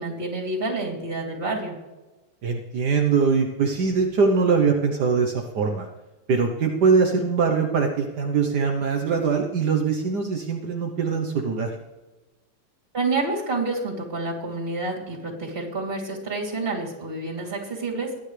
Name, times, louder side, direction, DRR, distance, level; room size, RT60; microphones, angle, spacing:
voice 1, 0.0-1.8 12.9-18.2, right 3 dB, 20° right, -1 dB, 3.0 m, -28 dB
voice 2, 2.4-5.9 6.3-11.7, right 5 dB, 80° right, 3 dB, 0.9 m, -22 dB
22.0 x 10.0 x 3.3 m, 1.1 s
omnidirectional pair, 3.4 m